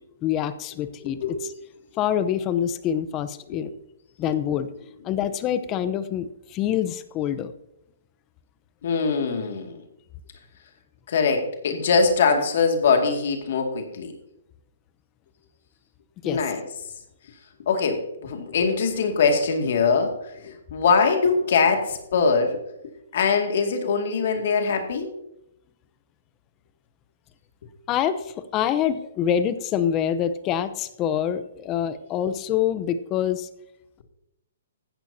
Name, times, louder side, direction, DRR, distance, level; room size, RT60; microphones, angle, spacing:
voice 1, 0.2-1.5 2.0-3.7 4.2-4.7 5.0-7.5 16.2-16.4 27.9-33.5, left 9 dB, 25° left, 13 dB, 0.8 m, -26 dB
voice 2, 1.0-1.4 3.5-3.6 8.8-9.8 11.1-14.1 16.2-16.6 17.7-22.6 23.1-25.1, left 5 dB, 60° left, 4 dB, 2.2 m, -22 dB
15.0 x 11.5 x 2.8 m, 0.84 s
hypercardioid pair, 140°, 0 cm